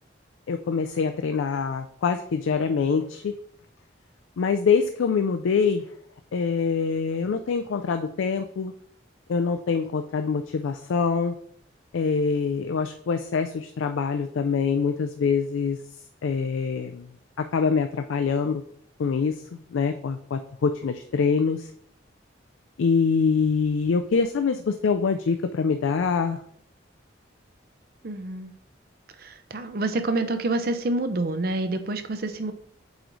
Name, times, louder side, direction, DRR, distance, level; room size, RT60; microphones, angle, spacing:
voice 1, 0.5-3.4 4.4-5.9 6.3-8.7 9.3-11.3 11.9-15.8 16.2-17.1 17.4-18.6 19.0-21.7 22.8-26.4, left 5 dB, 85° left, 8 dB, 0.4 m, -25 dB
voice 2, 28.0-28.5 29.2-32.5, right 2 dB, 50° right, 9 dB, 0.6 m, -27 dB
7.9 x 3.1 x 3.9 m, 0.64 s
head